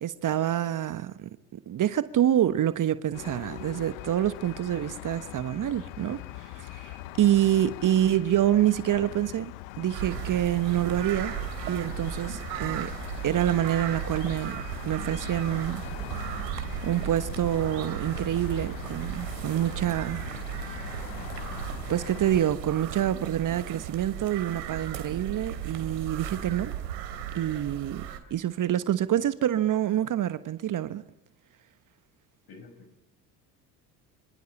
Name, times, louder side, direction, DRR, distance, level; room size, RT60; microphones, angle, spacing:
voice 1, 0.0-9.5 9.8-11.3 11.6-12.9 13.2-15.8 16.8-20.2 20.6-21.1 21.9-26.7 27.3-28.0 28.3-31.0, right 11 dB, 40° right, 1.2 m, -27 dB
sound 1, 3.1-22.4, left 18 dB, 65° left, 1.2 m, -41 dB
sound 2, 9.9-28.2, right 10 dB, 75° right, 3.3 m, -36 dB
voice 2, 32.5-33.0, left 3 dB, 45° left, 6.4 m, -49 dB
26.5 x 25.5 x 8.8 m
figure-of-eight pair, 60°, 50 cm